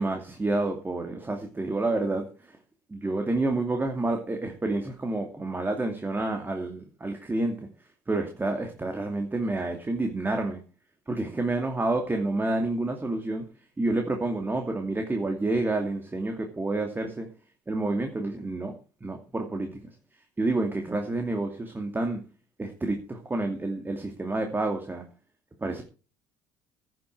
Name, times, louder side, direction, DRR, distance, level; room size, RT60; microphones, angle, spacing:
voice 1, 0.0-2.5 2.9-7.5 8.1-10.6 11.1-13.4 13.8-17.3 17.7-18.7 19.0-19.8 20.4-22.2 22.6-25.0 25.6-25.8, right 2 dB, 20° right, 4 dB, 2.5 m, -29 dB
16.5 x 7.7 x 4.7 m, 0.34 s
hypercardioid pair, 55°, 11 cm